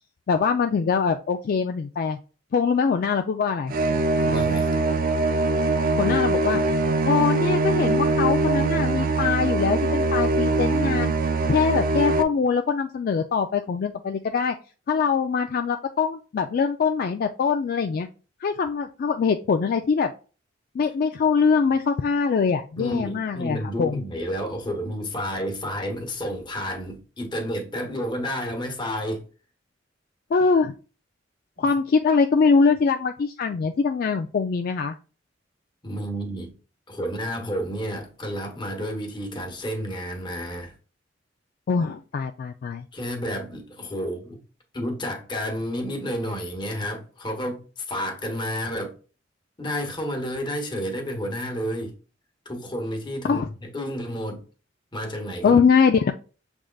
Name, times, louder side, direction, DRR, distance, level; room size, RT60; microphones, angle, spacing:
voice 1, 0.3-2.2 2.5-3.7 6.0-6.6 7.1-11.1 11.5-14.6 14.9-18.1 18.4-20.1 20.7-24.0 30.3-30.7 31.6-34.9 41.7-42.8 53.2-53.5 55.4-56.1, left 5 dB, 50° left, 0.3 m, -23 dB
sound 1, 3.7-12.2, right 3 dB, 50° right, 0.5 m, -22 dB
voice 2, 4.2-4.7 22.8-29.3 31.6-31.7 35.8-36.6 36.9-40.8 42.9-44.4 44.7-48.9 49.6-51.9 52.4-54.4 54.9-55.6, equal, 25° left, 1.1 m, -30 dB
6.3 x 3.6 x 2.3 m
head